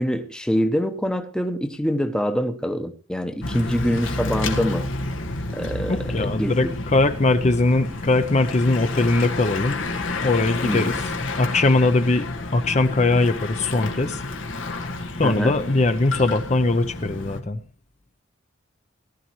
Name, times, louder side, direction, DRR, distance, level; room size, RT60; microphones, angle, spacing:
voice 1, 0.0-4.9 5.5-6.7 10.6-11.0 15.2-15.6, equal, 5° left, 8 dB, 0.8 m, -25 dB
Bicycle / Mechanisms, 3.4-17.4, left 2 dB, 80° left, 1.8 m, -30 dB
voice 2, 5.9-9.8 10.2-10.9 11.4-12.3 12.5-14.2 15.2-17.6, left 2 dB, 35° left, 9 dB, 0.7 m, -20 dB
18.0 x 12.5 x 3.1 m, 0.39 s
head